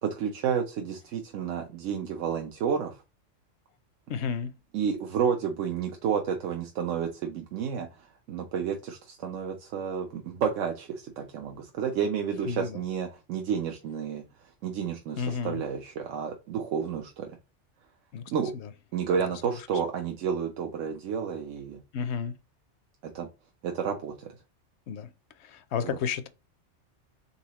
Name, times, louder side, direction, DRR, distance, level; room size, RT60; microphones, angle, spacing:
voice 1, 0.0-3.0 4.7-14.2 14.6-17.4 18.3-18.5 18.9-21.8 23.1-23.3 23.6-24.3 25.8-26.0, right 7 dB, 80° right, 1.0 m, -31 dB
voice 2, 4.1-4.5 12.5-12.8 15.2-15.6 18.1-18.2 21.9-22.3 24.9-25.1 25.4-26.3, left 6 dB, 70° left, 0.8 m, -31 dB
4.2 x 3.8 x 2.9 m
omnidirectional pair, 1.3 m